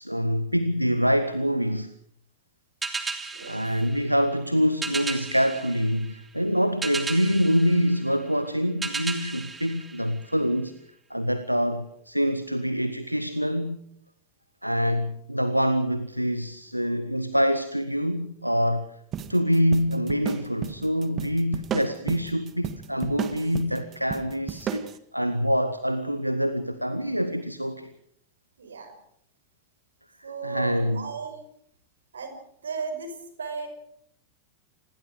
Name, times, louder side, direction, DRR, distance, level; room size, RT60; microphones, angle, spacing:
voice 1, 0.0-1.9 3.5-10.8 11.1-13.8 14.6-18.9 19.3-27.9 30.2-31.1, equal, 90° right, 1.0 m, -25 dB
sound 1, 2.8-10.7, right 4 dB, 15° right, 3.0 m, -36 dB
voice 2, 3.3-3.6 28.6-29.0 30.2-31.4 32.1-32.4 32.6-33.7, right 5 dB, 70° right, 5.5 m, -35 dB
sound 2, 19.1-25.0, right 9 dB, 30° right, 1.9 m, -34 dB
27.5 x 21.0 x 5.0 m
figure-of-eight pair, 90°, 0 cm